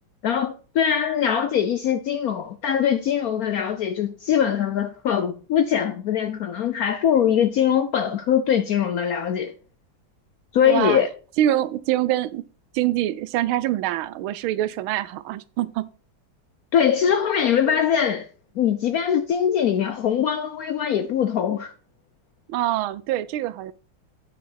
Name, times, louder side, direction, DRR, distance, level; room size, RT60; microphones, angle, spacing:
voice 1, 0.2-9.5 10.5-11.1 16.7-18.3 18.6-21.7, left 8 dB, 80° left, 0.8 m, -22 dB
voice 2, 10.6-11.0 11.4-12.5 12.7-15.9 22.5-23.7, right 13 dB, 80° right, 1.4 m, -24 dB
9.4 x 4.9 x 5.7 m
omnidirectional pair, 2.3 m